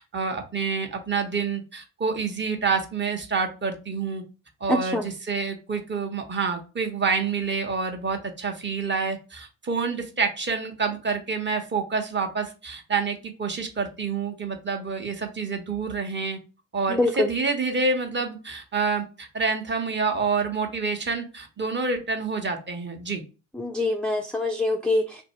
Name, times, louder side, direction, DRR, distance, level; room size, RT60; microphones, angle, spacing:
voice 1, 0.0-4.2 4.6-16.4 16.7-23.2, right 4 dB, 30° right, 4 dB, 1.0 m, -28 dB
voice 2, 4.7-5.0 16.9-17.3 23.6-25.2, left 2 dB, 5° left, 3 dB, 0.4 m, -24 dB
2.6 x 2.6 x 4.2 m, 0.33 s
hypercardioid pair, 50°, 39 cm